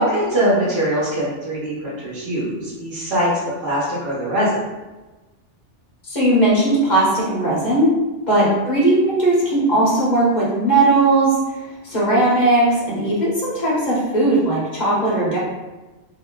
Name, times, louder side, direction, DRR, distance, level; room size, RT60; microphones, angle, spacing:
voice 1, 0.0-3.3 3.6-4.6 8.3-8.5, right 1 dB, 60° right, -9 dB, 1.4 m, -22 dB
voice 2, 6.0-7.9 8.3-11.3 11.8-15.4, right 2 dB, 35° left, -6 dB, 1.4 m, -18 dB
3.2 x 2.9 x 3.9 m, 1.1 s
omnidirectional pair, 1.2 m